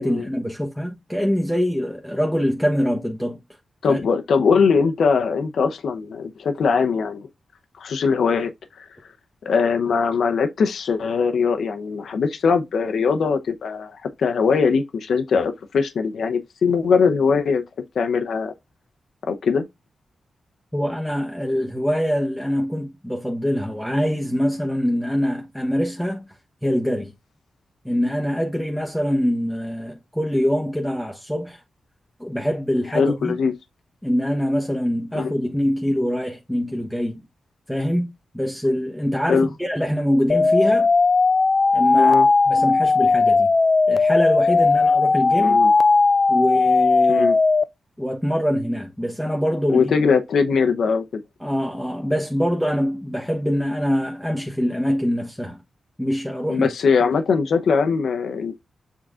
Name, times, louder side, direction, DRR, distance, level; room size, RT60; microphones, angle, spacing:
voice 1, 0.0-3.4 3.9-4.0 20.7-26.2 26.6-27.1 27.8-31.6 32.2-33.4 34.0-37.2 37.7-38.1 38.3-40.9 41.7-42.1 42.5-43.5 43.9-45.6 46.3-47.3 48.0-49.9 51.4-55.6 56.0-56.7, equal, ahead, 1.0 m, -24 dB
voice 2, 3.8-7.3 7.8-8.9 9.4-17.6 17.9-18.5 19.2-19.6 32.9-33.5 35.1-35.3 39.2-39.5 42.0-42.3 45.4-45.7 47.1-47.3 49.7-51.2 56.5-58.5, left 5 dB, 75° left, 0.7 m, -21 dB
sound 1, 40.3-47.6, left 3 dB, 35° left, 0.4 m, -17 dB
7.4 x 3.7 x 3.7 m
wide cardioid pair, 135°, 0 cm